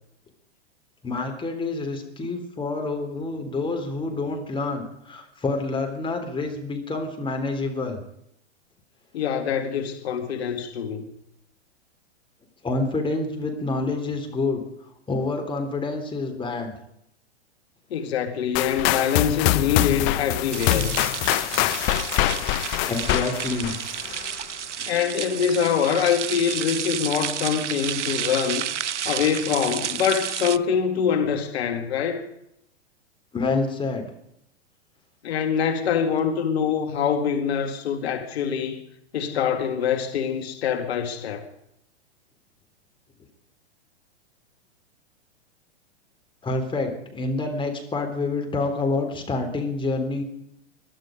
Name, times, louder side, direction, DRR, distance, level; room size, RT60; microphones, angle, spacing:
voice 1, 1.0-8.0 12.6-14.6 15.1-16.7 22.8-23.7 33.3-34.1 46.4-50.2, left 3 dB, 15° left, 3.5 m, -27 dB
voice 2, 9.1-11.1 17.9-21.0 24.9-28.7 29.1-32.3 35.2-38.8 39.1-41.5, left 7 dB, 65° left, 2.2 m, -24 dB
sound 1, 18.5-24.4, left 16 dB, 35° left, 1.0 m, -24 dB
sound 2, 20.5-30.6, right 9 dB, 85° right, 0.6 m, -31 dB
22.5 x 12.0 x 5.2 m
hypercardioid pair, 110°, 34 cm